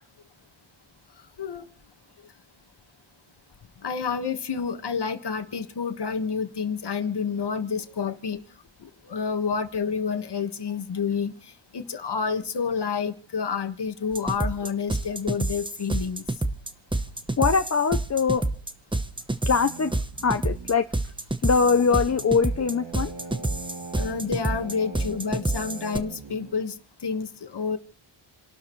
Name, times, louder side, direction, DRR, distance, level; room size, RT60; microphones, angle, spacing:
voice 1, 3.8-8.4 8.8-16.2 24.0-27.8, left 6 dB, 50° left, 7 dB, 1.6 m, -29 dB
sound 1, 14.1-26.0, right 2 dB, 10° right, 0.8 m, -28 dB
voice 2, 17.4-18.4 19.5-19.9 20.2-20.8 21.4-23.1, left 5 dB, 35° left, 7 dB, 0.6 m, -22 dB
sound 2, 19.5-26.5, right 4 dB, 75° right, 2.4 m, -42 dB
29.5 x 12.5 x 3.1 m, 0.43 s
wide cardioid pair, 175°, 50 cm